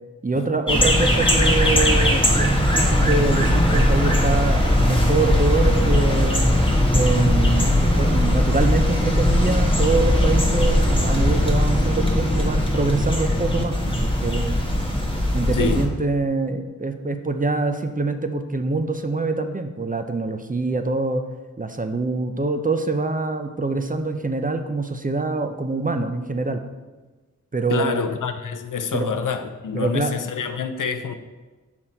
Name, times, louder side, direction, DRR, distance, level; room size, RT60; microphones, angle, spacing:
voice 1, 0.2-6.4 6.9-14.6 15.3-21.2 21.6-26.6 27.5-28.0 28.9-29.1 29.7-30.1, right 3 dB, 25° right, 7 dB, 0.5 m, -25 dB
sound 1, 0.7-15.9, left 1 dB, 15° left, 1.3 m, -19 dB
voice 2, 15.5-15.8 27.7-31.2, left 6 dB, 75° left, 9 dB, 0.5 m, -27 dB
5.9 x 4.1 x 4.4 m, 1.3 s
cardioid pair, 40°, 32 cm